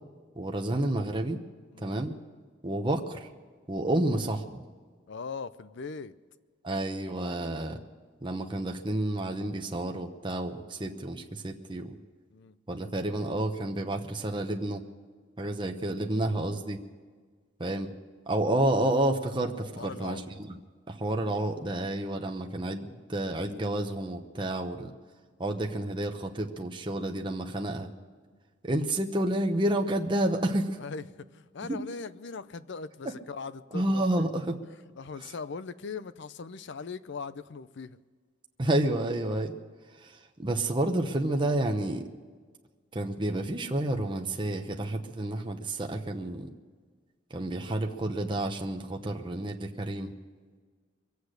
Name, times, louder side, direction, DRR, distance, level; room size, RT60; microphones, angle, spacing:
voice 1, 0.3-1.4 1.8-2.1 2.6-3.3 3.7-4.6 6.6-7.8 8.2-12.0 12.7-14.8 15.4-16.8 17.6-17.9 18.3-20.6 20.9-24.9 25.4-27.9 28.6-30.8 31.7-31.8 33.7-34.6 35.2-35.3 38.6-39.5 40.0-42.0 42.9-46.5 47.3-50.1, right 1 dB, 25° right, 3 dB, 0.9 m, -30 dB
voice 2, 5.1-6.1 12.3-12.6 19.8-20.2 30.8-31.0 31.3-34.3 34.7-38.0, left 4 dB, 60° left, 15 dB, 0.6 m, -40 dB
23.0 x 8.2 x 6.6 m, 1.5 s
head